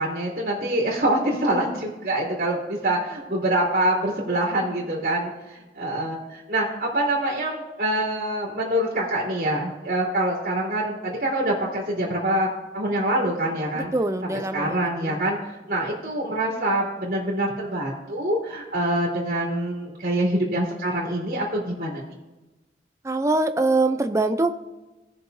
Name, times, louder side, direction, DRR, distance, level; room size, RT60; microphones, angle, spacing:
voice 1, 0.0-13.9 14.2-22.0, right 1 dB, 55° right, -5 dB, 2.9 m, -25 dB
voice 2, 13.8-15.2 23.0-24.5, right 2 dB, 15° right, 9 dB, 0.5 m, -23 dB
19.0 x 6.8 x 2.7 m, 1.1 s
head